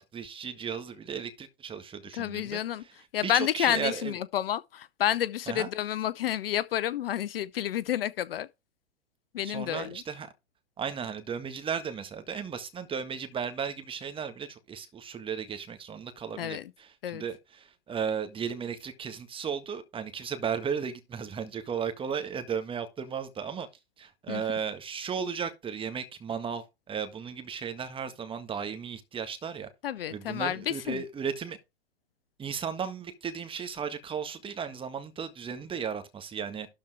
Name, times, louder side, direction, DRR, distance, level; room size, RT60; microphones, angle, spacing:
voice 1, 0.0-2.9 3.2-4.2 5.5-5.7 9.4-10.3 10.8-23.7 24.0-29.7 30.1-31.6 32.4-36.7, right 7 dB, 15° right, 1.6 m, -35 dB
voice 2, 2.1-2.8 3.1-8.5 9.3-10.0 16.4-16.7 17.0-17.2 24.3-24.4 29.8-31.0, left 11 dB, 55° left, 0.6 m, -30 dB
12.5 x 4.4 x 4.8 m
figure-of-eight pair, 105°, 33 cm